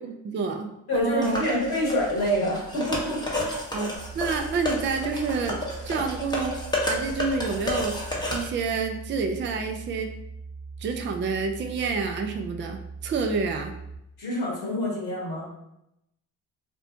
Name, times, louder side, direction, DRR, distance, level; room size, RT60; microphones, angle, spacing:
voice 1, 0.0-1.4 3.7-6.6 6.9-10.1 10.8-13.7, right 5 dB, 30° right, 5 dB, 0.4 m, -29 dB
voice 2, 0.9-3.6 14.2-15.5, left 1 dB, 65° left, -4 dB, 1.1 m, -27 dB
sound 1, 1.2-8.4, left 1 dB, 10° left, 0.7 m, -31 dB
sound 2, 4.0-14.0, right 4 dB, 65° right, 0.7 m, -41 dB
2.6 x 2.1 x 2.7 m, 0.82 s
hypercardioid pair, 40°, 40 cm